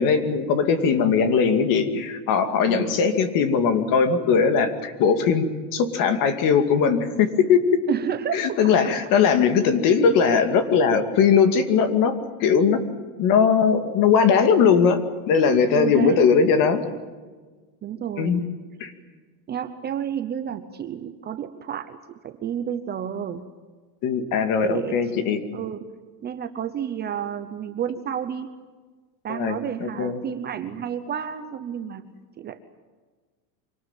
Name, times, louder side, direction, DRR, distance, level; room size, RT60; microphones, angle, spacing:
voice 1, 0.0-5.5 5.7-7.8 8.3-12.8 13.2-15.0 15.3-16.8 18.2-18.4 18.8-18.9 24.0-25.4 29.3-30.2, left 6 dB, 45° left, 9 dB, 2.4 m, -20 dB
voice 2, 2.6-2.9 7.9-8.7 15.7-16.3 17.8-18.5 19.5-22.0 22.2-23.5 24.6-25.0 25.5-25.8 26.2-28.5 29.2-32.1 32.4-32.6, right 9 dB, 20° right, 9 dB, 0.8 m, -30 dB
25.0 x 18.5 x 9.0 m, 1.4 s
supercardioid pair, 160°, 46 cm